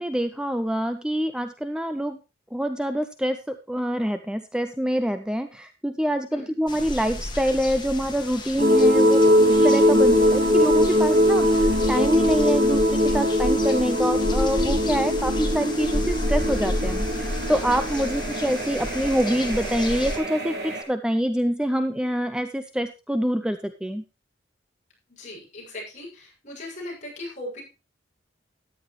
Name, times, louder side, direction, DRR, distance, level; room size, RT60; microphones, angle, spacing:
voice 1, 0.0-2.2 2.5-24.0, equal, 5° right, 8 dB, 0.6 m, -26 dB
sound 1, 6.7-20.2, left 1 dB, 25° left, 1.9 m, -31 dB
sound 2, 8.6-20.8, equal, 60° right, 3.2 m, -21 dB
voice 2, 25.1-27.6, left 1 dB, 40° left, -2 dB, 6.8 m, -39 dB
13.5 x 10.5 x 3.2 m, 0.29 s
head